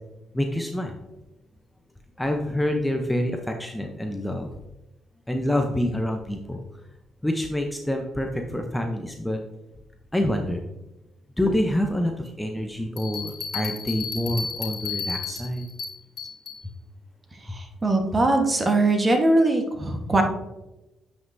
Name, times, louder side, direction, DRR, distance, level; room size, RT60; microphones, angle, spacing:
voice 1, 0.3-0.9 2.2-4.5 5.3-6.6 7.2-9.4 10.1-10.6 11.4-12.1 12.4-15.7, left 1 dB, 5° left, 3 dB, 0.7 m, -26 dB
sound 1, 13.0-16.6, left 5 dB, 65° left, 1.3 m, -33 dB
voice 2, 17.5-20.2, right 2 dB, 25° right, 4 dB, 1.2 m, -21 dB
9.1 x 5.4 x 2.7 m, 0.98 s
cardioid pair, 90°, 0 cm